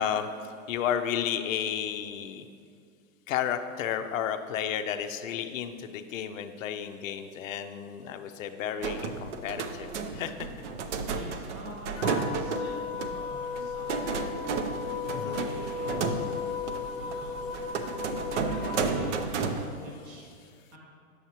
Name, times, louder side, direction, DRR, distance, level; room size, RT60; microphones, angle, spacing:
voice 1, 0.0-2.5 3.3-10.5 15.1-15.4, left 9 dB, 60° left, 8 dB, 0.6 m, -32 dB
sound 1, 8.8-19.7, right 4 dB, 55° right, 0.6 m, -33 dB
voice 2, 11.1-14.2 15.0-16.2 17.0-17.7 18.5-20.8, equal, 10° right, -4 dB, 0.4 m, -47 dB
sound 2, 12.0-19.1, left 6 dB, 10° left, 1.0 m, -36 dB
sound 3, 14.5-19.7, right 1 dB, 80° right, 1.5 m, -47 dB
7.8 x 6.4 x 2.9 m, 2.3 s
hypercardioid pair, 145°, 44 cm